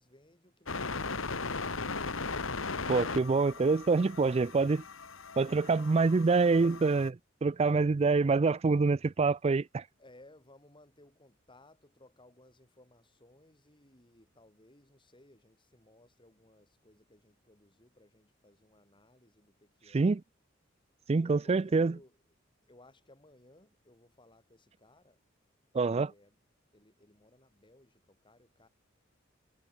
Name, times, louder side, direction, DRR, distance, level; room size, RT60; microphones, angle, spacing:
voice 1, 0.0-1.8 7.5-8.4 10.0-20.2 21.1-22.2 22.6-25.2 25.8-26.4 26.7-28.7, left 1 dB, 25° left, 5.8 m, -61 dB
sound 1, 0.7-7.1, left 4 dB, 85° left, 2.0 m, -38 dB
voice 2, 2.9-4.8 5.4-9.8 19.9-20.2 21.1-22.0 25.7-26.1, right 4 dB, 30° right, 0.4 m, -26 dB
head